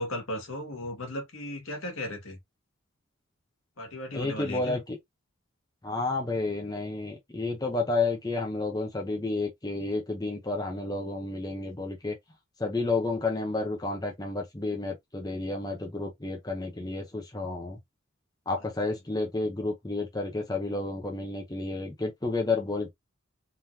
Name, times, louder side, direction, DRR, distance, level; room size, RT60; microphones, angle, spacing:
voice 1, 0.0-2.4 3.8-4.8, left 1 dB, 75° left, 1.8 m, -36 dB
voice 2, 4.1-5.0 5.8-12.2 12.6-17.8 18.5-22.9, left 3 dB, 20° left, 0.8 m, -31 dB
3.8 x 3.2 x 2.8 m
head